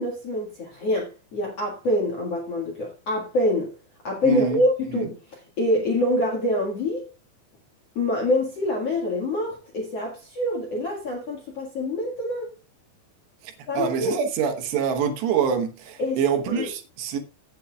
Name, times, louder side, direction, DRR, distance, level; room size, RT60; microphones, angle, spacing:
voice 1, 0.0-3.7 4.0-7.1 8.0-12.5 13.7-14.2 16.0-16.2 16.5-16.7, left 1 dB, 55° left, 1.9 m, -25 dB
voice 2, 4.2-4.6 4.9-5.1 13.4-17.2, right 7 dB, 75° right, 3.2 m, -25 dB
16.0 x 8.6 x 2.3 m
omnidirectional pair, 5.4 m